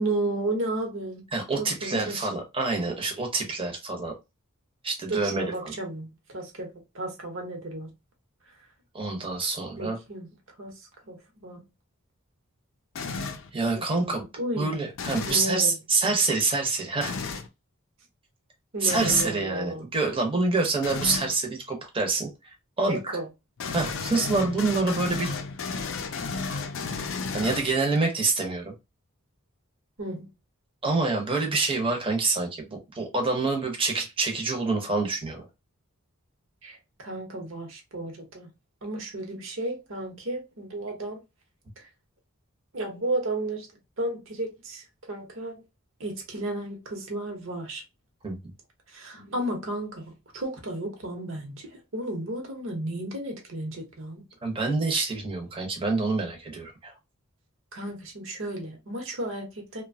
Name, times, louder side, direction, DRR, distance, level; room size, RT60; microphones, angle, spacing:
voice 1, 0.0-1.2 1.6-2.3 5.1-6.1 6.3-6.7 6.9-7.9 9.8-10.3 10.6-10.7 11.1-11.6 13.7-14.9 15.3-15.8 18.7-19.8 22.8-23.3 30.0-30.3 36.6-38.5 38.8-41.2 42.7-43.7 44.0-45.6 46.0-47.8 48.9-54.2 57.7-59.8, right 1 dB, 65° right, 0.9 m, -33 dB
voice 2, 1.3-4.1 4.8-5.7 8.9-10.0 13.5-14.2 14.6-17.2 18.8-22.3 22.8-23.1 23.7-25.4 27.3-28.7 30.8-35.5 48.2-48.4 54.4-56.9, right 3 dB, 25° right, 0.8 m, -26 dB
sound 1, 13.0-13.5 14.9-15.5 17.0-17.5 18.9-19.4 20.8-21.3 23.6-28.0, left 4 dB, 65° left, 0.4 m, -33 dB
2.8 x 2.2 x 2.6 m
head